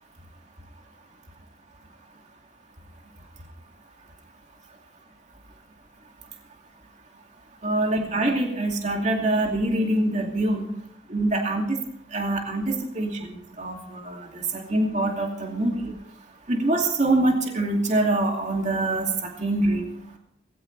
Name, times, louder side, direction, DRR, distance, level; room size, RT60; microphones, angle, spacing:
voice 1, 7.6-10.7 11.1-11.8 12.1-13.2 13.6-15.9 16.5-19.8, right 2 dB, 40° right, 1 dB, 2.5 m, -24 dB
19.0 x 16.5 x 3.3 m, 0.71 s
head